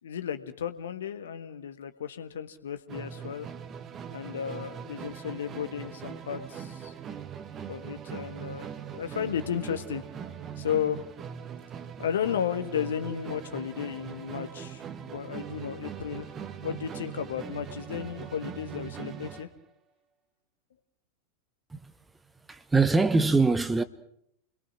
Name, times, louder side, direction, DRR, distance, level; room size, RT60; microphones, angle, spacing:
voice 1, 0.0-3.5 4.1-6.9 7.7-10.0 10.6-11.0 12.0-19.5, left 8 dB, 65° left, 1.7 m, -34 dB
Musical instrument, 2.9-19.6, right 8 dB, 25° right, 1.6 m, -41 dB
voice 2, 22.5-23.8, right 3 dB, 10° right, 1.1 m, -23 dB
30.0 x 21.5 x 6.1 m
figure-of-eight pair, 90°, 0 cm